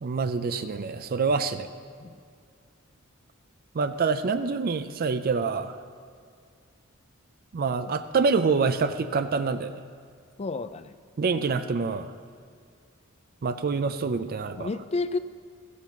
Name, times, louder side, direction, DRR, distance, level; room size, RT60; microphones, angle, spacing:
voice 1, 0.0-1.7 3.7-5.8 7.5-9.7 11.2-12.1 13.4-14.7, right 4 dB, 45° right, 10 dB, 0.4 m, -26 dB
voice 2, 10.4-10.9 14.6-15.2, left 3 dB, 30° left, 12 dB, 0.4 m, -30 dB
13.5 x 8.3 x 5.7 m, 2.2 s
head